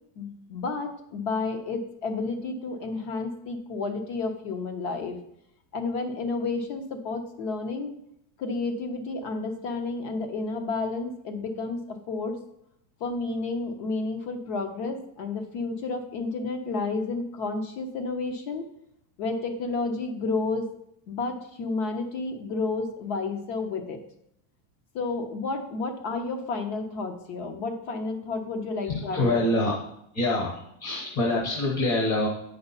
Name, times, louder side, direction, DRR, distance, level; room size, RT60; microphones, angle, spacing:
voice 1, 0.2-5.2 5.7-7.9 8.4-12.4 13.0-18.7 19.2-20.7 21.1-24.0 24.9-29.4, left 3 dB, 60° left, 5 dB, 1.3 m, -31 dB
voice 2, 28.8-29.7 30.1-32.3, left 2 dB, 30° left, -1 dB, 1.1 m, -25 dB
9.1 x 5.3 x 4.1 m, 0.76 s
cardioid pair, 175°, 49 cm